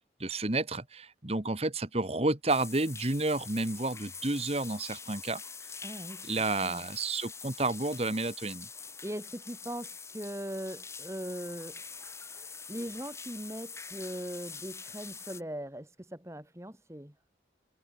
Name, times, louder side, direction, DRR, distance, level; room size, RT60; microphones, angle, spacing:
voice 1, 0.2-5.4 6.2-8.7, right 2 dB, 35° right, 1.4 m, -31 dB
sound 1, 2.5-15.4, left 5 dB, 15° left, 3.5 m, -45 dB
voice 2, 5.8-6.3 6.6-6.9 8.7-17.1, equal, 15° right, 2.1 m, -40 dB
head